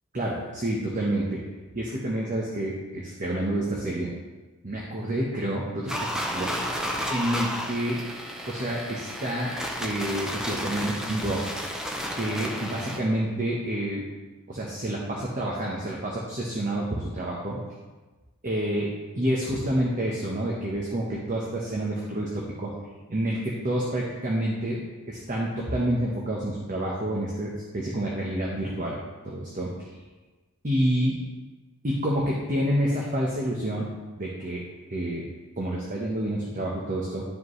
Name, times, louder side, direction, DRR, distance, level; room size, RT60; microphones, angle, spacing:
voice 1, 0.1-1.4 1.7-4.1 4.6-6.5 7.1-8.0 8.5-9.5 9.8-11.4 12.1-14.0 14.5-17.6 18.4-18.9 19.1-22.7 23.1-29.0 29.2-29.9 30.6-31.2 31.8-33.9 34.2-34.6 34.9-35.2 35.6-37.2, right 1 dB, 35° right, -3 dB, 1.1 m, -28 dB
sound 1, 5.9-13.0, equal, 5° right, 0.7 m, -32 dB
11.5 x 5.0 x 3.2 m, 1.2 s
head